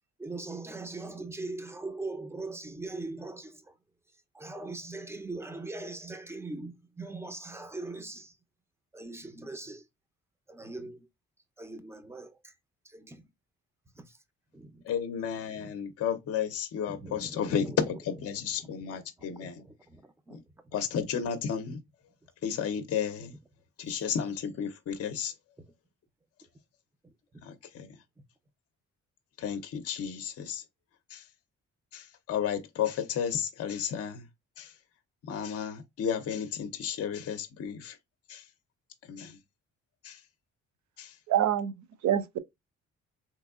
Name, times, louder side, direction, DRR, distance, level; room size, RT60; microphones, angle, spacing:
voice 1, 0.2-3.8 4.3-8.4 8.9-9.9 10.5-11.1 11.6-12.5 12.8-13.3 13.9-14.2 14.5-14.8 15.5-15.7 16.9-17.8 18.6-18.7 19.2-20.8 23.8-24.1 27.0-27.1, right 2 dB, 10° right, 0.6 m, -41 dB
voice 2, 14.8-19.6 20.3-20.4 20.7-21.8 22.4-23.3 23.8-25.3 27.4-28.0 29.4-30.6 31.1-31.3 31.9-34.3 34.6-34.8 35.2-38.0 38.3-38.5 39.1-39.4 40.0-40.2 41.0-41.2, left 8 dB, 50° left, 0.6 m, -33 dB
voice 3, 41.3-42.4, right 10 dB, 70° right, 0.7 m, -27 dB
3.4 x 3.0 x 2.3 m
cardioid pair, 90°, 30 cm